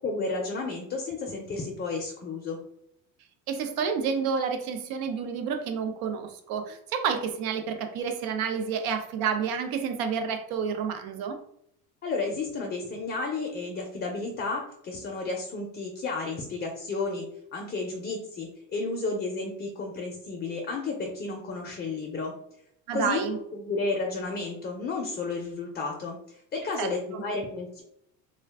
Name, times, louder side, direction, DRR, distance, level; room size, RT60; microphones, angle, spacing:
voice 1, 0.0-2.6 12.0-17.2 17.5-22.3 22.9-27.8, left 3 dB, 30° left, 1 dB, 0.5 m, -32 dB
voice 2, 3.5-11.4 22.9-23.4 26.8-27.2, right 6 dB, 65° right, 6 dB, 0.6 m, -29 dB
2.4 x 2.2 x 3.4 m, 0.74 s
cardioid pair, 125°, 38 cm